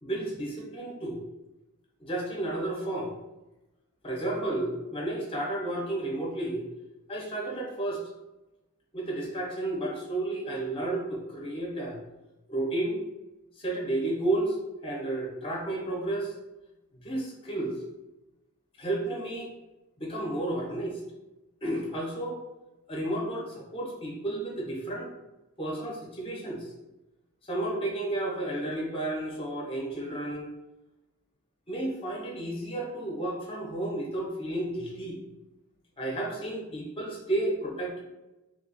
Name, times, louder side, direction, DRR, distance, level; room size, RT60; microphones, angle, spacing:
voice 1, 0.0-1.2 2.0-3.1 4.0-6.7 7.1-8.0 8.9-12.0 12.5-13.0 13.6-14.6 14.8-16.3 16.9-17.8 18.8-19.5 20.0-21.0 21.6-22.4 22.9-25.1 25.6-26.7 27.5-30.5 31.7-35.2 36.0-38.0, right 1 dB, 25° left, -2 dB, 0.7 m, -32 dB
3.3 x 2.3 x 3.9 m, 1.0 s
head